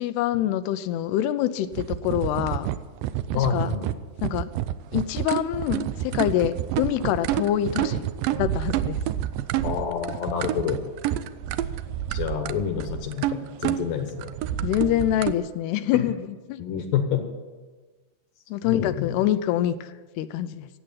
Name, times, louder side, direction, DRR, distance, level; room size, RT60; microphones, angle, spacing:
voice 1, 0.0-2.7 3.4-3.7 4.2-4.5 4.9-8.1 8.4-9.0 14.6-16.6 18.5-20.7, left 12 dB, 90° left, 12 dB, 2.7 m, -25 dB
sound 1, 1.7-15.4, right 12 dB, 80° right, 2.0 m, -29 dB
voice 2, 3.3-3.9 9.6-10.8 12.1-14.3 15.9-16.0 16.6-17.2 18.6-19.1, left 7 dB, 65° left, 6 dB, 2.4 m, -28 dB
16.5 x 8.0 x 9.0 m, 1.3 s
omnidirectional pair, 4.6 m